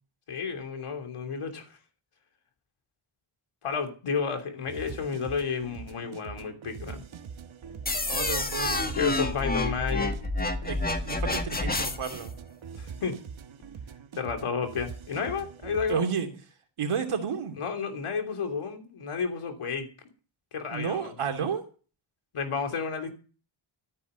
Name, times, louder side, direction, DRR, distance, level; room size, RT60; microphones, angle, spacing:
voice 1, 0.3-1.8 3.6-7.0 8.8-10.1 12.8-13.1 14.1-16.0 17.6-19.9 20.5-21.1 22.3-23.1, left 5 dB, 85° left, 6 dB, 3.2 m, -31 dB
sound 1, 4.7-16.1, right 6 dB, 70° right, 1.3 m, -43 dB
sound 2, 7.9-12.3, left 2 dB, 20° left, 1.5 m, -29 dB
voice 2, 8.1-9.0 10.6-12.3 15.9-16.3 16.8-17.6 20.7-21.6, right 6 dB, 90° right, 4 dB, 2.8 m, -31 dB
13.5 x 9.4 x 6.8 m, 0.38 s
wide cardioid pair, 120°, 50 cm